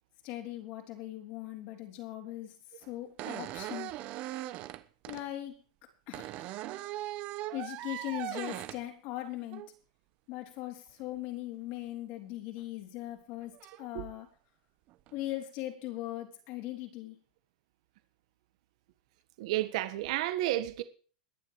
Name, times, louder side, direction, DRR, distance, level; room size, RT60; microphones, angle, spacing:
voice 1, 0.2-4.0 5.1-5.6 6.1-6.5 7.5-9.7 10.3-14.3 15.1-17.2, left 15 dB, 45° left, 3.9 m, -40 dB
sound 1, 2.8-2.9 3.2-5.2 6.1-8.8 9.5-9.7 12.6-12.7 13.5-13.9 14.9-15.1, right 15 dB, 40° right, 1.0 m, -39 dB
voice 2, 19.4-20.8, right 15 dB, 60° right, 1.5 m, -31 dB
21.5 x 7.5 x 4.9 m
supercardioid pair, 150°, 4 cm